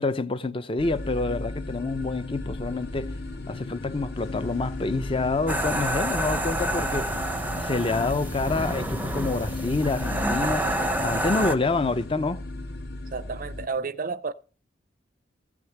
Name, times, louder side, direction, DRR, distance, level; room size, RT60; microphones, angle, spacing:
voice 1, 0.0-3.1 3.5-7.1 7.6-12.4, left 3 dB, 30° left, 0.6 m, -27 dB
sound 1, 0.8-13.7, left 2 dB, 60° left, 1.1 m, -35 dB
sound 2, 4.1-12.1, left 3 dB, 85° left, 0.6 m, -46 dB
sound 3, 5.5-11.5, right 1 dB, 10° right, 0.6 m, -28 dB
voice 2, 13.1-14.3, right 4 dB, 45° right, 0.6 m, -31 dB
15.5 x 6.1 x 7.3 m
head